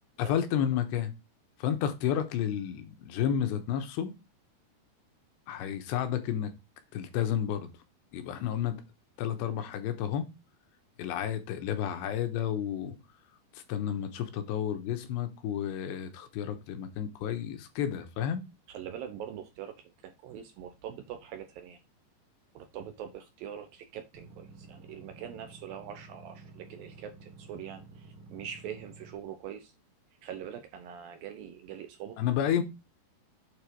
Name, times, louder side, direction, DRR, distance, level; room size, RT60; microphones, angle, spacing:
voice 1, 0.2-1.1 1.6-4.1 5.5-6.5 6.9-7.7 8.1-8.8 9.2-10.3 11.0-12.9 13.5-18.4 32.2-32.6, left 9 dB, 85° left, 3.3 m, -31 dB
voice 2, 18.7-21.8 22.5-29.7 30.2-32.2, right 9 dB, 75° right, 2.3 m, -43 dB
sound 1, 24.1-29.1, right 3 dB, 55° right, 1.4 m, -51 dB
8.8 x 3.8 x 4.7 m
omnidirectional pair, 5.0 m